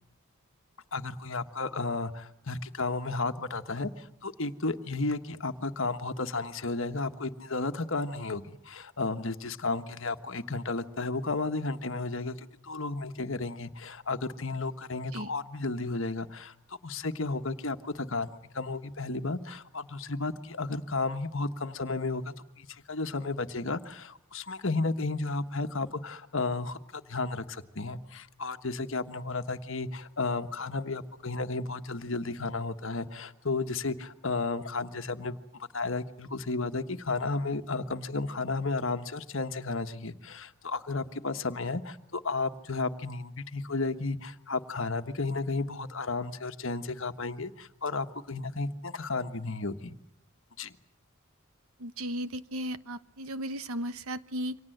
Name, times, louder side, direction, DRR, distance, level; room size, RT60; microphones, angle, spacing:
voice 1, 0.9-49.9 50.6-50.7, left 3 dB, 60° left, 9 dB, 1.4 m, -33 dB
voice 2, 51.8-54.6, equal, 75° right, 13 dB, 1.1 m, -35 dB
29.0 x 25.0 x 8.0 m, 0.74 s
head